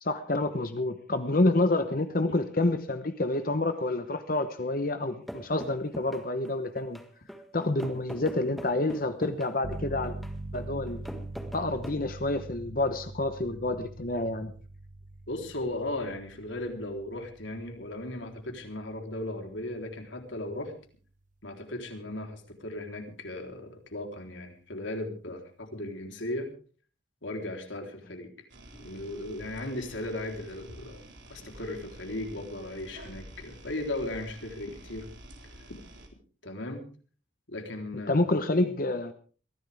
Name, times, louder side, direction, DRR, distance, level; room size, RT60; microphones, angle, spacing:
voice 1, 0.0-7.0 7.5-10.1 10.5-11.0 11.5-14.5 38.1-39.1, left 2 dB, 45° left, 9 dB, 1.0 m, -28 dB
sound 1, 5.3-11.9, equal, ahead, 1.6 m, -43 dB
sound 2, 9.6-20.2, right 2 dB, 40° right, 0.8 m, -43 dB
voice 2, 15.3-20.7 21.4-26.5 27.2-28.3 28.8-31.0 31.3-35.1 35.7-35.8 36.4-36.9 37.5-38.2, left 1 dB, 80° left, 4 dB, 3.7 m, -36 dB
sound 3, 28.5-36.1, right 1 dB, 75° right, 4.1 m, -49 dB
22.5 x 15.5 x 3.5 m, 0.40 s
head